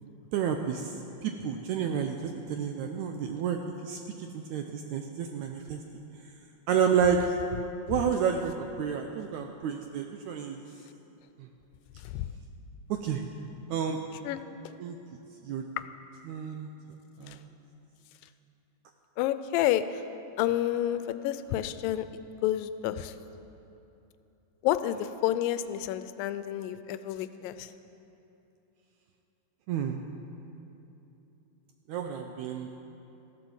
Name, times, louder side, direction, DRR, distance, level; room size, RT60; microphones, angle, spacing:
voice 1, 0.3-0.9 1.2-5.8 6.7-7.3 7.9-10.6 12.9-13.2 13.7-14.0 14.8-15.0 15.4-15.6 16.3-16.7 17.2-17.5 29.7-30.0 31.9-32.8, right 7 dB, 80° right, 5 dB, 1.7 m, -30 dB
voice 2, 12.0-12.3 14.2-14.4 17.3-17.4 19.2-20.0 20.4-23.2 24.6-27.7, left 12 dB, 90° left, 12 dB, 2.3 m, -30 dB
14.5 x 11.0 x 7.1 m, 2.9 s
omnidirectional pair, 4.0 m